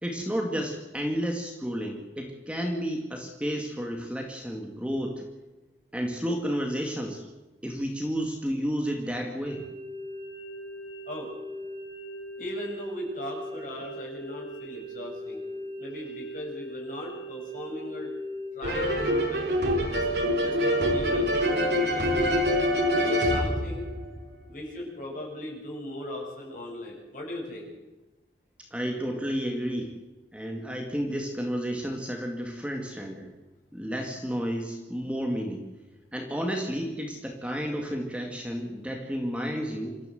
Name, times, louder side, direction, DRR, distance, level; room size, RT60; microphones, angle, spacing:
voice 1, 0.0-5.2 5.9-7.3 7.6-9.6 28.7-29.9 30.3-33.3 33.7-35.6 36.1-40.0, equal, 5° right, 2 dB, 2.1 m, -31 dB
sound 1, 9.4-18.5, equal, 15° left, 3.6 m, -40 dB
voice 2, 12.4-15.4 15.8-18.1 18.5-19.5 19.8-22.1 22.9-23.9 24.5-27.7, left 1 dB, 45° left, -1 dB, 7.8 m, -38 dB
sound 2, 18.6-24.4, equal, 75° right, 4.6 m, -25 dB
27.0 x 14.0 x 7.9 m, 1.1 s
head